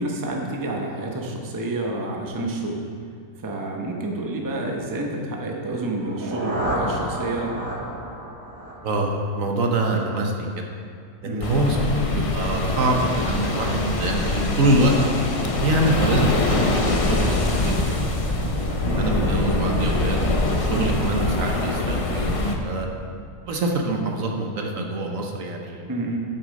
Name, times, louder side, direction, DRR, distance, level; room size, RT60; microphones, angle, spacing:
voice 1, 0.0-2.8 3.4-7.5 11.2-11.5 18.7-19.0 20.7-20.9 25.9-26.2, right 2 dB, 15° right, 0 dB, 0.7 m, -29 dB
sound 1, 5.9-9.8, right 1 dB, 35° right, 1.5 m, -31 dB
voice 2, 8.8-10.6 11.2-14.9 15.6-17.7 18.0-18.5 19.0-22.9 23.5-25.9, right 1 dB, 60° right, 1 dB, 1.2 m, -25 dB
sound 2, 11.4-22.6, left 2 dB, 45° left, 0.4 m, -24 dB
8.3 x 7.1 x 5.2 m, 2.2 s
omnidirectional pair, 1.7 m